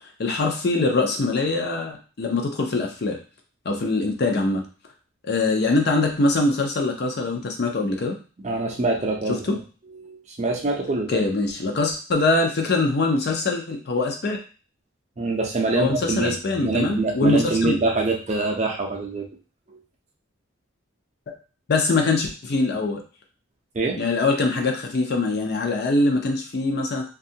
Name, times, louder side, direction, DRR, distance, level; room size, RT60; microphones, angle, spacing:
voice 1, 0.2-3.2 3.7-4.6 5.3-8.2 9.5-9.6 11.1-14.4 15.7-17.7 21.3-21.4 21.7-23.0 24.0-27.0, left 3 dB, 50° left, 2 dB, 0.5 m, -23 dB
voice 2, 8.4-9.6 9.9-11.3 15.2-16.4 16.6-19.3 19.7-19.8 23.7-24.0, right 3 dB, 35° right, 1 dB, 0.5 m, -25 dB
2.6 x 2.3 x 2.7 m, 0.36 s
head